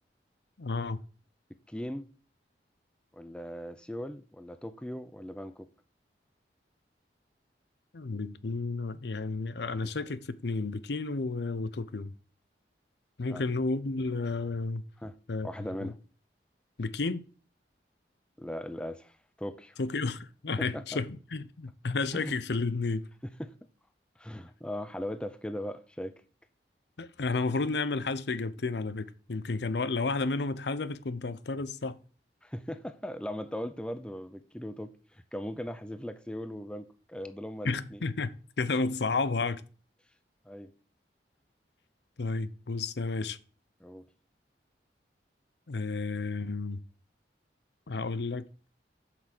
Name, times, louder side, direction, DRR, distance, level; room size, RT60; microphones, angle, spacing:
voice 1, 0.6-1.0 7.9-12.1 13.2-14.8 15.3-15.5 15.8-15.9 16.8-17.3 19.8-23.0 27.0-32.0 37.6-39.6 42.2-43.4 45.7-46.8 47.9-48.5, left 3 dB, 70° left, 0.6 m, -32 dB
voice 2, 1.7-2.1 3.1-5.7 13.3-13.4 15.0-15.1 15.4-16.0 18.4-19.1 19.4-19.8 20.6-21.0 22.1-22.3 23.4-23.5 24.2-26.2 32.4-38.0 40.5-40.7 43.8-44.0, equal, 5° left, 0.5 m, -39 dB
7.8 x 6.0 x 6.6 m
head